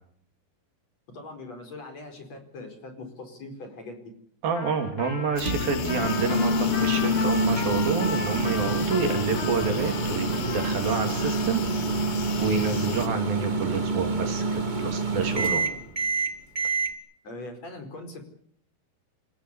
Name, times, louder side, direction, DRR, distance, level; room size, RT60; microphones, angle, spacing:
voice 1, 1.1-4.2 17.2-18.2, left 2 dB, 40° left, 6 dB, 5.6 m, -41 dB
voice 2, 4.4-11.6 12.4-15.6, right 5 dB, 65° right, 6 dB, 4.8 m, -28 dB
Trumpet, 4.5-11.7, left 5 dB, 60° left, 4.9 m, -37 dB
sound 1, 5.4-13.1, left 10 dB, 75° left, 3.1 m, -37 dB
Microwave oven, 5.4-16.9, right 2 dB, 25° right, 1.1 m, -27 dB
29.0 x 16.0 x 8.3 m, 0.64 s
omnidirectional pair, 4.6 m